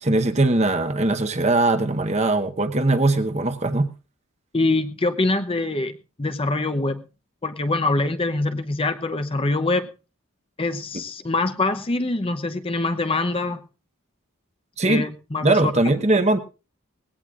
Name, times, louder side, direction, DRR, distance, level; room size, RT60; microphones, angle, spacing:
voice 1, 0.0-3.9 14.8-15.0 15.4-16.4, right 2 dB, 30° right, 8 dB, 1.0 m, -20 dB
voice 2, 4.5-5.9 6.2-7.0 7.4-9.9 10.6-13.6 14.8-16.0, left 2 dB, 25° left, 8 dB, 0.7 m, -24 dB
19.5 x 16.5 x 2.5 m, 0.31 s
head